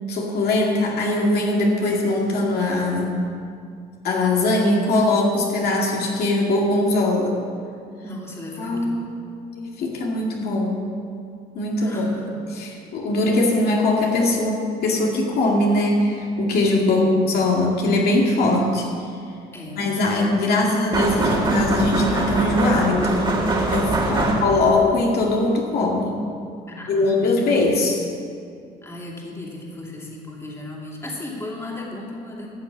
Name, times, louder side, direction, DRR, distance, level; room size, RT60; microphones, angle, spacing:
voice 1, 0.1-3.2 4.0-7.4 8.6-9.1 9.6-10.8 11.5-12.1 12.5-18.9 19.7-23.5 23.7-26.2 26.9-28.1, left 2 dB, 70° left, -2 dB, 2.1 m, -21 dB
voice 2, 8.0-9.0 11.8-12.3 16.9-17.3 19.5-19.8 24.2-24.4 26.7-27.1 28.8-32.5, left 1 dB, 15° left, -3 dB, 2.7 m, -35 dB
sound 1, 20.9-24.8, right 2 dB, 30° right, 2.3 m, -23 dB
14.0 x 7.1 x 7.2 m, 2.3 s
cardioid pair, 110°, 17 cm